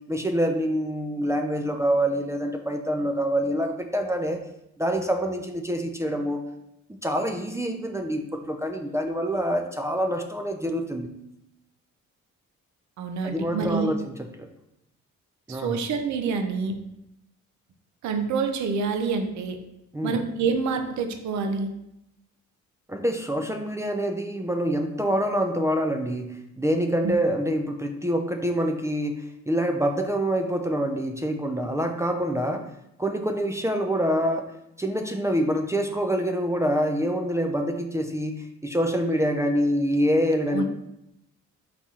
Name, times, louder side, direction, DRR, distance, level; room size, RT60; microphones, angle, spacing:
voice 1, 0.1-4.4 4.8-6.4 7.0-11.1 13.2-14.1 14.4-14.5 15.5-15.8 19.9-20.2 22.9-29.2 29.5-32.6 33.0-34.5 34.8-40.6, equal, 10° right, 4 dB, 0.3 m, -26 dB
voice 2, 13.0-13.9 15.5-16.8 18.0-19.6 20.0-21.7 27.0-27.1 40.5-40.6, right 5 dB, 70° right, 6 dB, 0.6 m, -27 dB
4.1 x 2.8 x 3.6 m, 0.83 s
cardioid pair, 90°, 30 cm